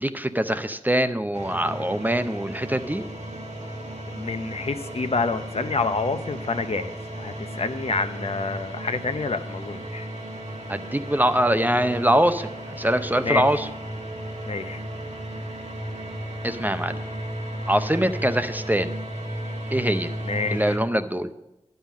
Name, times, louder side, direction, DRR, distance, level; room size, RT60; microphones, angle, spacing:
voice 1, 0.0-3.0 10.7-12.5 12.8-13.7 16.4-17.0 17.7-18.9 19.7-20.1 20.5-21.3, right 1 dB, 15° right, 10 dB, 0.6 m, -23 dB
sound 1, 1.3-20.8, right 1 dB, 75° right, 1.6 m, -34 dB
voice 2, 4.2-10.1 13.2-13.6 14.5-14.8 20.2-20.8, left 4 dB, 55° left, 9 dB, 0.7 m, -28 dB
10.5 x 5.6 x 7.2 m, 0.95 s
cardioid pair, 45°, 12 cm